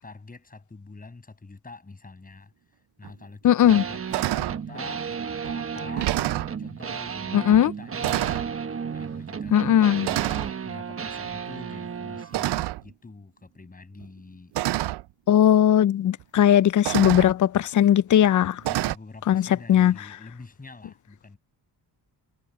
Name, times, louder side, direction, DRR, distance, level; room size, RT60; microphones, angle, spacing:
voice 1, 0.0-2.5 3.0-5.1 5.4-8.4 8.9-14.5 18.6-21.4, left 3 dB, 20° left, 7.3 m, -45 dB
sound 1, 3.0-3.1 3.6-3.8 4.1-4.6 5.4-5.5 5.9-6.5 7.5-7.7 8.0-8.5 9.4-9.7 10.0-10.5 12.3-12.9 14.0-14.1 14.5-15.0 16.2-16.3 16.8-17.3 18.6-19.0, right 16 dB, 75° right, 0.5 m, -27 dB
voice 2, 3.4-3.8 7.3-7.7 9.5-10.1 15.3-18.6 19.3-19.9, left 10 dB, 50° left, 0.5 m, -18 dB
sound 2, 3.7-12.4, right 6 dB, 35° right, 1.2 m, -33 dB
cardioid pair, 140°, 41 cm